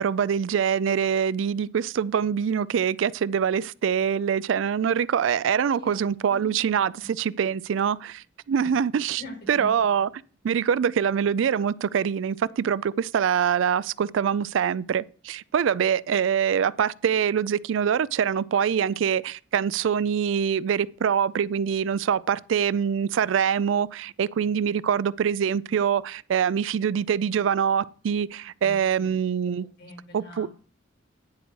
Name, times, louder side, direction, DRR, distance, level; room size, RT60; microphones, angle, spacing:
voice 1, 0.0-9.2 9.5-10.1 10.4-29.7 30.1-30.5, right 7 dB, 75° right, 0.4 m, -24 dB
voice 2, 5.5-6.7 7.0-7.1 8.6-8.7 9.2-9.7 28.6-29.1 29.5-30.5, left 1 dB, 60° left, 4.8 m, -44 dB
10.5 x 4.7 x 6.2 m
head